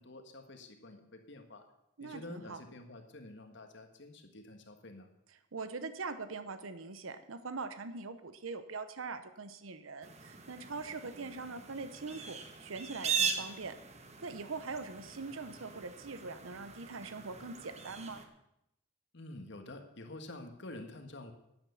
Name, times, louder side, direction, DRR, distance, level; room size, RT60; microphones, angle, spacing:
voice 1, 0.0-1.7 2.0-5.1 19.1-21.3, left 2 dB, 60° left, 6 dB, 1.6 m, -48 dB
voice 2, 2.0-2.6 5.5-13.7 14.2-18.2, right 4 dB, 85° right, 11 dB, 0.8 m, -42 dB
sound 1, 10.0-18.3, right 6 dB, 35° right, 1.2 m, -40 dB
11.0 x 9.0 x 7.0 m, 0.82 s
head